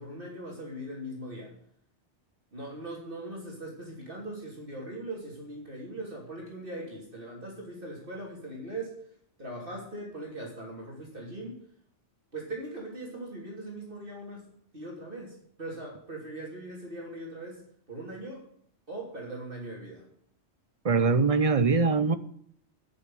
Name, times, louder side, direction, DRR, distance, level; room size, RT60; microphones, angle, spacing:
voice 1, 0.0-1.6 2.5-9.0 9.4-11.6 12.3-14.5 14.7-18.5 18.9-20.1, right 1 dB, 50° right, -2 dB, 3.4 m, -40 dB
voice 2, 20.8-22.2, right 4 dB, 35° right, 12 dB, 0.9 m, -22 dB
11.0 x 6.8 x 9.3 m, 0.65 s
omnidirectional pair, 1.2 m